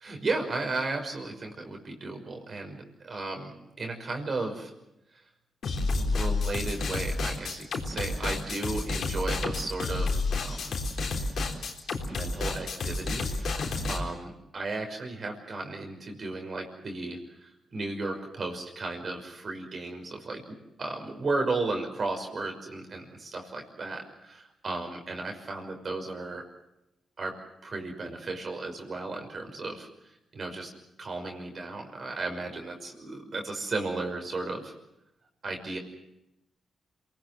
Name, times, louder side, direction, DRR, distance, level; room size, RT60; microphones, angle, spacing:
voice 1, 0.0-4.7 6.0-10.7 12.1-26.4 27.2-27.3 27.6-29.9 30.3-30.7 31.0-34.7 35.4-35.8, right 3 dB, 50° right, 3 dB, 5.9 m, -35 dB
sound 1, 5.6-14.0, left 3 dB, 70° left, 3.8 m, -30 dB
27.0 x 19.5 x 7.7 m, 0.88 s
supercardioid pair, 55°, 0 cm